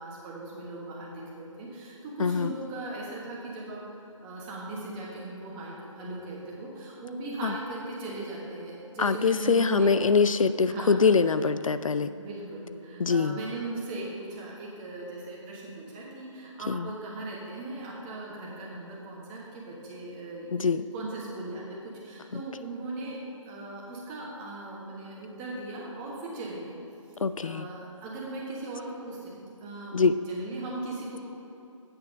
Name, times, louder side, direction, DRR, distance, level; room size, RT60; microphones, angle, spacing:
voice 1, 0.0-10.2 10.7-11.0 12.1-23.2 23.4-26.8 27.4-30.0 30.3-31.2, right 2 dB, 15° right, -4 dB, 1.3 m, -38 dB
voice 2, 2.2-2.5 7.4-7.5 9.0-12.1 13.0-13.4 16.7-16.9 20.5-20.8 22.3-22.4 27.2-27.7 29.9-30.1, left 5 dB, 80° left, 12 dB, 0.4 m, -24 dB
8.7 x 7.1 x 5.1 m, 2.9 s
figure-of-eight pair, 150°, 17 cm